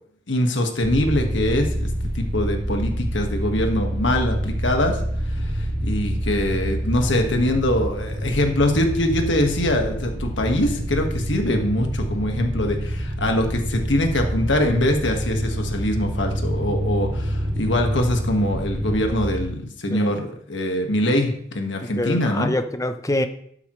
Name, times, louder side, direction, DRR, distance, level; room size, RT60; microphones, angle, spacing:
voice 1, 0.3-1.9 2.1-5.0 5.3-22.5, left 1 dB, 80° left, 4 dB, 1.6 m, -23 dB
sound 1, 0.8-19.5, equal, 55° right, 2.5 m, -27 dB
voice 2, 21.8-23.3, left 1 dB, 15° left, 9 dB, 0.7 m, -25 dB
12.5 x 8.5 x 3.2 m, 0.67 s
head